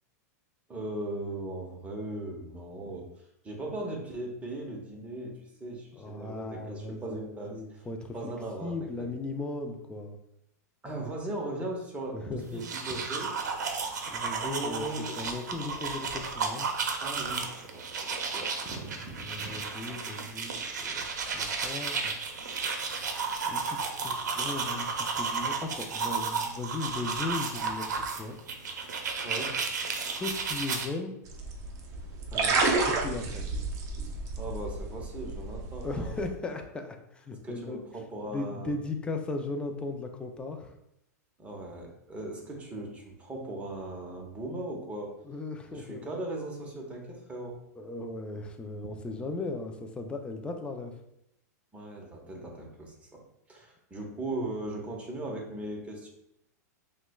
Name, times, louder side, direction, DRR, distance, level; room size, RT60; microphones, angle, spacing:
voice 1, 0.7-3.1 3.4-7.8 8.1-8.7 10.8-13.3 14.4-15.2 17.0-19.6 19.9-20.0 29.2-29.6 32.3-32.7 34.4-36.2 37.4-38.8 41.4-45.2 45.7-47.6 51.7-53.2 53.5-56.1, right 2 dB, 15° right, 0 dB, 0.9 m, -38 dB
voice 2, 5.9-8.3 8.6-10.2 12.1-12.7 14.1-14.8 15.2-16.7 19.2-20.6 20.8-21.1 21.3-22.1 23.5-28.4 30.1-31.1 32.9-33.5 35.8-37.8 38.3-40.7 45.2-46.2 47.7-51.0, left 3 dB, 10° left, 4 dB, 0.4 m, -37 dB
sound 1, 12.5-30.9, right 5 dB, 80° right, 0.6 m, -33 dB
sound 2, 31.3-36.3, right 3 dB, 35° right, 0.6 m, -31 dB
5.7 x 2.2 x 2.3 m, 0.81 s
hypercardioid pair, 120°, 9 cm